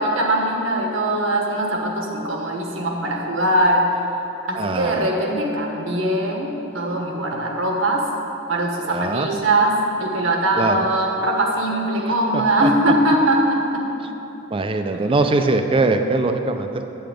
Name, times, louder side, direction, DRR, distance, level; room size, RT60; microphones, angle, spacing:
voice 1, 0.0-3.8 4.4-8.0 8.5-13.8, right 1 dB, 85° right, 0 dB, 1.4 m, -21 dB
voice 2, 4.5-5.1 8.9-9.3 10.6-10.8 12.3-12.7 14.5-16.9, right 3 dB, 25° right, 7 dB, 0.4 m, -22 dB
8.4 x 7.8 x 5.1 m, 3.0 s
head